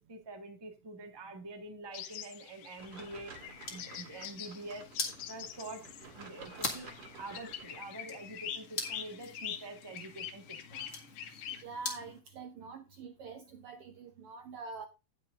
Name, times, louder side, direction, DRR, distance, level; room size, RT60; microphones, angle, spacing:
voice 1, 0.1-10.9, right 2 dB, 15° right, 0.8 m, -46 dB
sound 1, 1.9-11.6, left 9 dB, 80° left, 2.3 m, -45 dB
sound 2, 2.8-7.8, right 4 dB, 50° right, 2.9 m, -52 dB
sound 3, 3.4-12.2, left 3 dB, 30° left, 1.8 m, -44 dB
voice 2, 11.6-14.9, right 4 dB, 70° right, 1.4 m, -45 dB
18.0 x 6.2 x 2.5 m
omnidirectional pair, 3.3 m